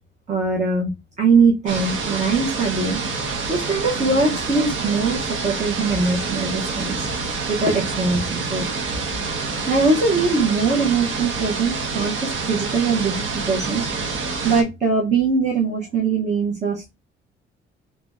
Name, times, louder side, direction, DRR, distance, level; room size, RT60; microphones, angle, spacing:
voice 1, 0.3-0.9 1.2-8.7 9.7-13.9 14.4-16.9, right 4 dB, 35° right, -3 dB, 1.0 m, -22 dB
sound 1, 1.7-14.6, right 4 dB, 70° right, 1.0 m, -27 dB
3.2 x 2.7 x 3.5 m, 0.24 s
cardioid pair, 155°, 21 cm